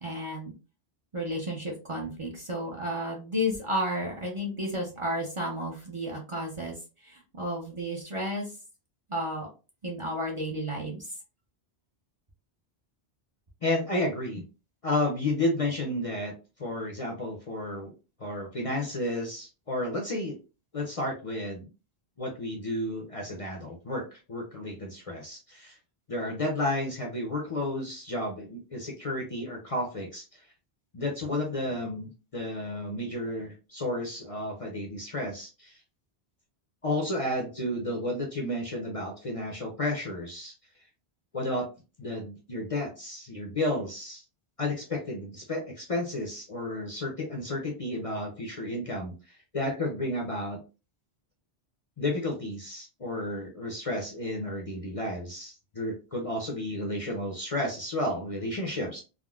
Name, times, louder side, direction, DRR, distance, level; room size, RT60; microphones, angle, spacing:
voice 1, 0.0-0.5 1.1-6.8 7.0-8.5 9.1-9.5 9.8-11.1, equal, 35° right, -1 dB, 0.6 m, -32 dB
voice 2, 13.6-14.4 14.8-16.3 16.6-17.9 18.2-20.4 20.7-21.7 22.2-25.8 26.1-30.4 30.9-35.8 36.8-40.5 41.3-41.7 42.0-44.2 44.6-50.6 52.0-59.0, left 1 dB, 40° left, 0 dB, 0.6 m, -32 dB
3.6 x 2.1 x 2.3 m, 0.32 s
omnidirectional pair, 1.1 m